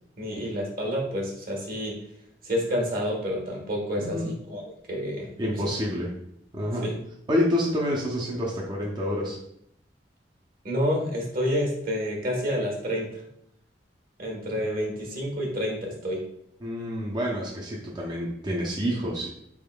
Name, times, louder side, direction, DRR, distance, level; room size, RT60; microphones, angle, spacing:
voice 1, 0.2-1.9 2.4-4.6 4.9-5.6 6.8-6.9 10.6-13.2 14.2-16.2, equal, 55° right, 0 dB, 1.1 m, -29 dB
voice 2, 4.0-4.3 5.4-6.1 6.5-6.9 7.3-9.4 16.6-19.3, equal, 25° right, -3 dB, 0.6 m, -28 dB
4.1 x 3.5 x 2.2 m, 0.73 s
head